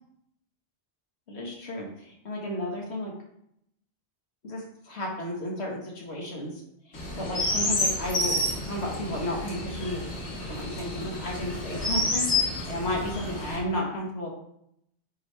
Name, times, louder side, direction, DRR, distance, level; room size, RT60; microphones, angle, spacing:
voice 1, 1.3-3.1 4.4-6.6 6.9-10.0 10.5-14.3, left 1 dB, 70° left, -2 dB, 1.7 m, -33 dB
Chirp tweet, 6.9-13.6, left 1 dB, 85° left, 2.0 m, -29 dB
9.2 x 3.2 x 3.3 m, 0.74 s
omnidirectional pair, 1.2 m